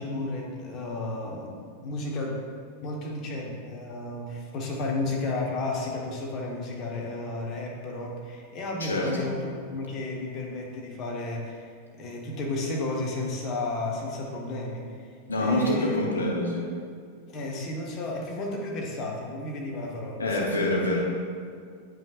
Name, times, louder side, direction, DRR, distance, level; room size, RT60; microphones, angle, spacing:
voice 1, 0.0-2.4 2.8-15.1 15.4-16.0 17.3-20.4, left 2 dB, 35° left, -1 dB, 1.1 m, -33 dB
voice 2, 15.3-16.7 20.2-21.0, left 1 dB, 75° left, -2 dB, 0.9 m, -26 dB
9.2 x 5.4 x 2.4 m, 2.1 s
figure-of-eight pair, 90°, 0 cm